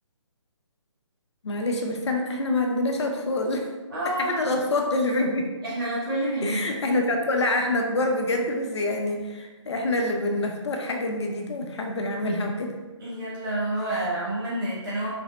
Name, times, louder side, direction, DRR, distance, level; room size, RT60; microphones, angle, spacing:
voice 1, 1.4-3.7 4.2-5.5 6.4-12.8, left 2 dB, 60° left, 2 dB, 0.6 m, -26 dB
voice 2, 3.9-4.6 5.6-7.0 13.0-15.1, right 1 dB, 45° right, -7 dB, 0.9 m, -29 dB
3.4 x 2.0 x 3.8 m, 1.2 s
figure-of-eight pair, 150°, 16 cm